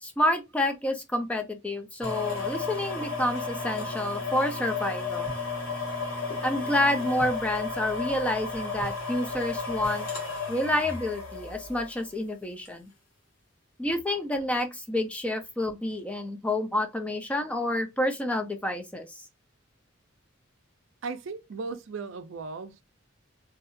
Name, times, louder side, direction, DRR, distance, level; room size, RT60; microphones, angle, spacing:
voice 1, 0.0-5.3 6.4-10.1 10.5-12.9 13.8-19.2, left 1 dB, 5° left, 0.3 m, -29 dB
sound 1, 2.0-12.0 12.6-12.7, left 4 dB, 75° left, 1.3 m, -33 dB
voice 2, 21.0-22.8, right 4 dB, 70° right, 0.4 m, -37 dB
2.7 x 2.4 x 2.5 m
head